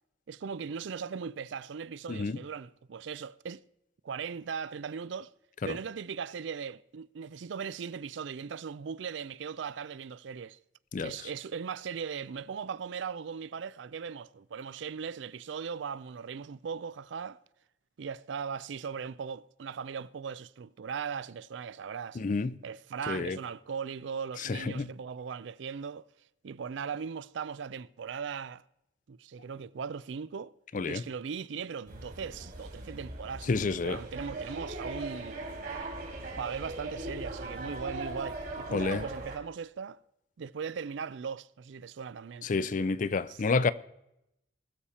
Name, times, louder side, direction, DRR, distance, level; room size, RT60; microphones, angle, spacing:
voice 1, 0.3-3.6 4.0-5.3 5.6-10.6 11.0-17.4 18.0-22.2 22.6-26.1 26.4-28.6 29.1-30.5 30.9-33.5 33.8-35.4 36.4-40.0 40.4-42.5 43.3-43.4, right 6 dB, 70° right, 0.4 m, -38 dB
voice 2, 22.2-22.6 23.1-23.4 24.4-24.9 30.7-31.0 33.5-34.0 38.7-39.0 42.4-43.7, left 4 dB, 40° left, 0.4 m, -29 dB
sound 1, 31.9-39.4, right 2 dB, 50° right, 2.7 m, -40 dB
20.5 x 7.1 x 4.2 m
head